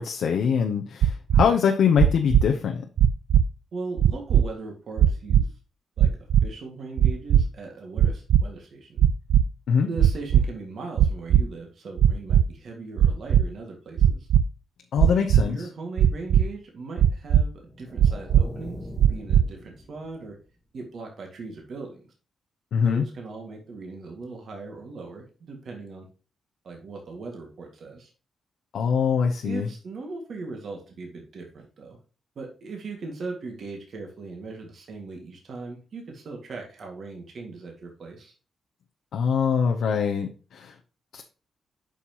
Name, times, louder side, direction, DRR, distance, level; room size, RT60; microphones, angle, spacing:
voice 1, 0.0-2.8 9.7-9.9 14.9-15.6 22.7-23.1 28.7-29.7 39.1-40.7 41.1-41.2, left 7 dB, 80° left, 3 dB, 0.8 m, -23 dB
sound 1, 1.0-1.4 2.0-2.4 3.0-3.4 4.0-4.4 5.0-5.4 6.0-6.4 7.0-7.4 8.0-8.4 9.0-9.4 10.0-10.4 11.0-11.4 12.0-12.4 13.0-13.4 14.0-14.4 15.0-15.4 16.0-16.4 17.0-17.4 18.0-18.4 19.0-19.4, right 10 dB, 80° right, 0.3 m, -17 dB
voice 2, 3.7-5.5 6.0-6.1 6.4-9.0 9.8-14.3 15.4-17.5 17.8-20.4 20.7-22.1 22.8-26.1 26.6-28.1 29.4-32.0 32.4-38.3, right 3 dB, 60° right, 1 dB, 1.9 m, -39 dB
sound 2, 17.6-20.5, left 1 dB, 15° left, 1.2 m, -42 dB
8.3 x 5.8 x 2.9 m, 0.36 s
cardioid pair, 100°, 0 cm